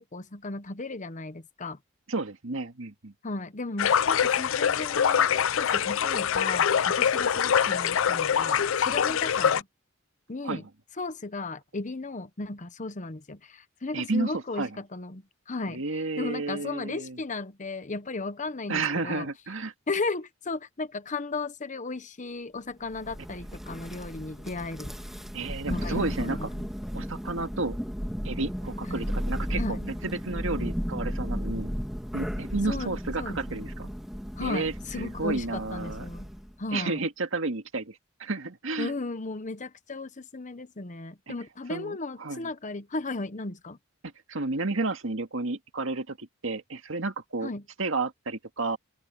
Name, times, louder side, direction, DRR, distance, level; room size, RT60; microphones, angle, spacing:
voice 1, 0.0-1.8 3.2-9.7 10.3-10.6 11.0-19.3 19.9-25.0 25.7-26.7 28.9-29.1 29.5-29.8 32.7-33.7 34.4-36.3 36.6-37.0 38.8-43.8 47.4-47.6, left 3 dB, 40° left, 1.0 m, -35 dB
voice 2, 2.1-3.1 10.4-10.6 13.9-14.7 15.7-17.2 18.7-19.7 25.3-26.5 26.9-27.8 28.2-29.8 30.0-31.7 32.1-33.9 34.4-36.1 36.7-38.9 41.3-41.4 41.7-42.5 44.3-47.5 47.8-48.8, right 3 dB, 70° right, 2.0 m, -31 dB
sound 1, 3.8-9.6, left 8 dB, 70° left, 0.5 m, -24 dB
Thunder, 22.9-36.5, equal, ahead, 1.8 m, -34 dB
open air
head